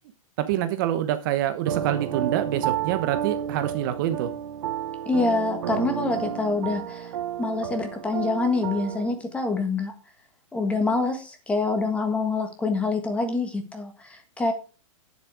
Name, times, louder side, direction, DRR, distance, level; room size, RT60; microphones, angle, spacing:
voice 1, 0.4-4.3, right 12 dB, 35° right, 10 dB, 1.0 m, -26 dB
sound 1, 1.7-9.1, right 10 dB, 60° right, 1.2 m, -31 dB
voice 2, 5.0-7.1 7.4-9.9 10.5-14.5, left 3 dB, 5° left, 7 dB, 1.5 m, -26 dB
9.9 x 7.4 x 4.8 m, 0.35 s
hypercardioid pair, 165°, 18 cm